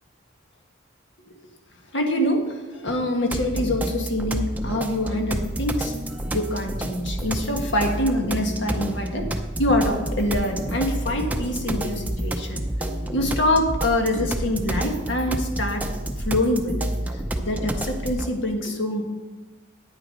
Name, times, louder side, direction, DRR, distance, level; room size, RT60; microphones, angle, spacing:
voice 1, 1.9-5.9 6.3-15.8 16.2-19.0, left 1 dB, 65° left, 3 dB, 1.6 m, -25 dB
sound 1, 3.3-18.3, right 1 dB, 10° right, 0.6 m, -29 dB
9.5 x 8.9 x 5.4 m, 1.2 s
head